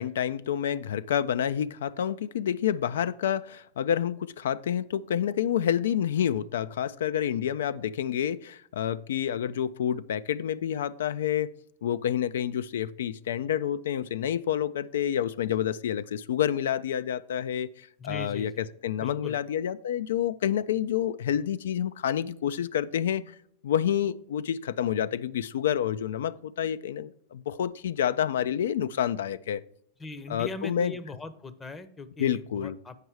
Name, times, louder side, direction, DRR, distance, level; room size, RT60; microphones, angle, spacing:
voice 1, 0.0-11.5 11.8-23.3 23.6-29.6 30.3-30.9 32.2-32.8, left 9 dB, 75° left, 0.3 m, -28 dB
voice 2, 18.0-18.7 19.0-19.4 30.0-33.0, left 3 dB, 20° left, 0.7 m, -40 dB
8.1 x 5.4 x 4.6 m
hypercardioid pair, 95°, 0 cm